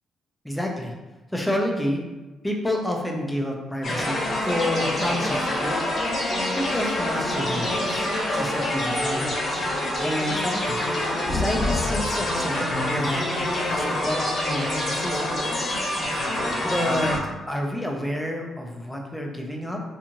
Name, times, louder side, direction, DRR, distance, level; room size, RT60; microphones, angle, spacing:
voice 1, 0.4-0.9 1.3-2.0 2.4-5.8 6.5-9.6 10.0-10.8 11.3-12.6 12.9-13.3 13.7-15.2 16.6-17.2 17.5-19.8, left 1 dB, 5° left, 1 dB, 0.5 m, -29 dB
sound 1, 3.8-17.2, left 1 dB, 50° left, 0.9 m, -26 dB
2.6 x 2.4 x 2.9 m, 1.1 s
cardioid pair, 90°, 0 cm